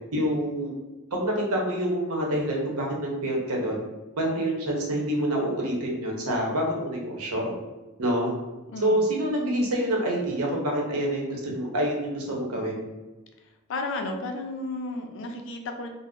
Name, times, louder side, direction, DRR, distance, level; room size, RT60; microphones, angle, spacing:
voice 1, 0.1-0.8 1.1-3.8 4.1-7.5 8.0-8.3 8.8-12.8, right 1 dB, 85° right, -1 dB, 0.8 m, -27 dB
voice 2, 8.7-9.1 13.7-15.9, left 2 dB, 60° left, 4 dB, 0.4 m, -33 dB
2.5 x 2.0 x 3.5 m, 1.1 s
head